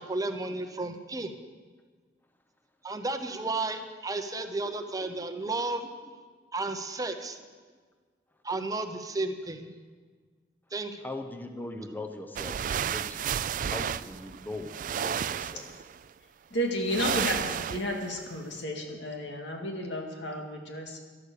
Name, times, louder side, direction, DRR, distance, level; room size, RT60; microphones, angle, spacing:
voice 1, 0.0-1.3 2.8-5.9 6.5-7.4 8.4-9.7 10.7-11.0, right 2 dB, 20° right, 7 dB, 0.8 m, -33 dB
voice 2, 11.0-13.3 13.6-15.7, left 2 dB, 10° left, 6 dB, 0.8 m, -40 dB
sound 1, 12.4-16.0 16.9-18.1, right 8 dB, 50° right, 0.3 m, -32 dB
voice 3, 16.5-21.0, equal, 85° left, 2 dB, 2.1 m, -32 dB
12.0 x 11.5 x 6.8 m, 1.5 s
head